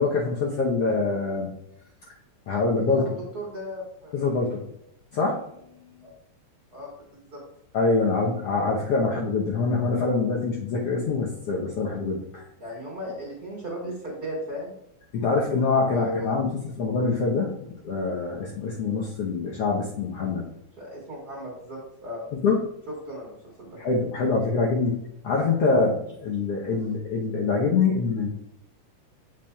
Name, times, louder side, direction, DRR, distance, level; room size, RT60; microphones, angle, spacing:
voice 1, 0.0-1.5 2.5-3.0 4.1-4.6 5.1-5.8 7.7-12.4 15.1-16.5 16.8-17.5 17.8-20.4 22.4-22.6 23.8-24.9 25.2-28.3, left 4 dB, 65° left, -2 dB, 1.6 m, -24 dB
voice 2, 2.9-4.3 6.0-6.1 6.7-6.9 7.3-7.4 12.6-14.7 15.8-16.3 20.8-22.2 22.9-23.8 26.7-26.9, equal, 40° right, -4 dB, 1.6 m, -36 dB
8.0 x 7.1 x 2.3 m, 0.77 s
omnidirectional pair, 3.6 m